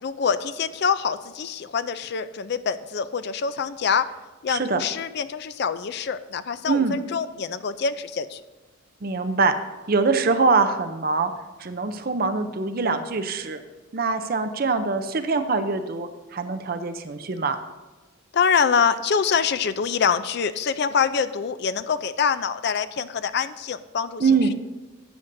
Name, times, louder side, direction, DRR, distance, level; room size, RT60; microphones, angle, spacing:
voice 1, 0.0-4.1 4.4-8.4 18.3-24.5, left 6 dB, 50° left, 12 dB, 0.4 m, -25 dB
voice 2, 4.5-4.8 6.7-7.0 9.0-9.6 9.9-11.3 11.6-13.6 13.9-17.6 24.2-24.5, right 4 dB, 45° right, 8 dB, 0.5 m, -23 dB
13.0 x 8.0 x 2.6 m, 1.2 s
head